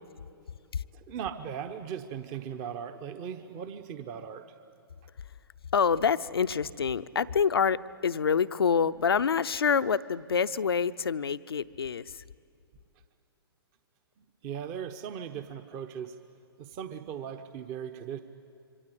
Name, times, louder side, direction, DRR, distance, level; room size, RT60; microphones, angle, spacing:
voice 1, 0.9-4.4 14.2-16.1 16.6-18.2, right 8 dB, 30° right, 8 dB, 1.1 m, -38 dB
voice 2, 5.7-12.2, left 6 dB, 65° left, 14 dB, 0.7 m, -27 dB
27.0 x 24.5 x 8.5 m, 2.5 s
figure-of-eight pair, 120°, 13 cm